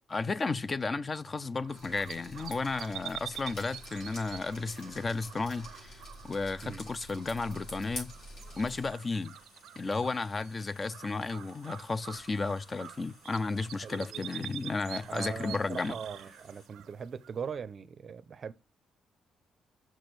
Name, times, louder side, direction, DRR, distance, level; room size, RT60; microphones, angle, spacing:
voice 1, 0.1-8.1 8.6-9.4 9.8-16.0, left 3 dB, 20° left, 0.3 m, -33 dB
sound 1, 1.6-17.7, right 12 dB, 90° right, 0.4 m, -47 dB
Drip, 1.7-8.9, equal, 80° left, 4.0 m, -47 dB
sound 2, 7.4-16.7, left 3 dB, 55° left, 1.5 m, -61 dB
voice 2, 13.8-14.7 15.1-18.5, right 6 dB, 35° right, 0.5 m, -41 dB
6.2 x 6.1 x 3.2 m
cardioid pair, 165°, 0 cm